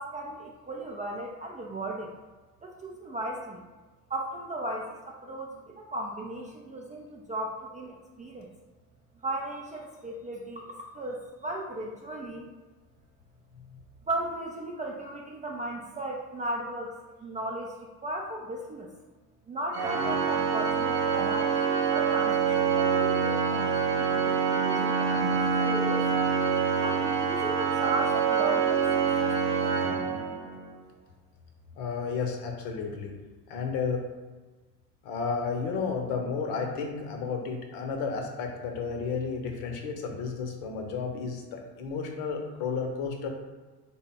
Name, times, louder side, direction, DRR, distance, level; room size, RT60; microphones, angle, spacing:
voice 1, 0.0-2.1 2.6-3.6 4.1-8.5 9.2-10.6 10.9-12.5 14.1-16.9 17.2-17.8 18.0-18.9 19.5-21.6 21.9-26.0 26.8-30.1, right 1 dB, 20° right, -1 dB, 0.3 m, -36 dB
Organ, 19.7-30.7, right 6 dB, 90° right, 0.5 m, -26 dB
voice 2, 31.8-33.1 33.5-34.0 35.0-43.3, left 5 dB, 60° left, 3 dB, 0.8 m, -32 dB
3.5 x 2.1 x 4.0 m, 1.3 s
hypercardioid pair, 60°, 45 cm